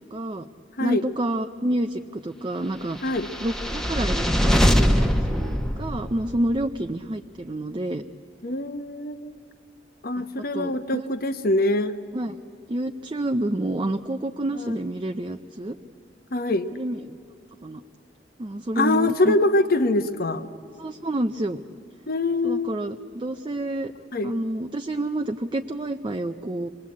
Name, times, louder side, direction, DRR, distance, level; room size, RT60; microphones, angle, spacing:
voice 1, 0.1-0.5 0.8-3.0 3.4-8.0 10.2-10.3 10.5-11.1 12.1-12.4 12.7-15.8 16.7-17.2 17.6-17.8 18.4-19.4 20.8-21.6 22.4-23.9 24.2-26.7, right 1 dB, 30° right, 6 dB, 0.6 m, -28 dB
sound 1, 3.1-6.5, equal, 5° left, 1.2 m, -22 dB
voice 2, 8.4-9.4 10.0-11.9 14.5-14.8 16.3-16.7 18.8-20.5 22.1-22.8 24.1-24.3, left 2 dB, 60° left, 10 dB, 1.0 m, -24 dB
26.5 x 21.0 x 8.5 m, 2.6 s
head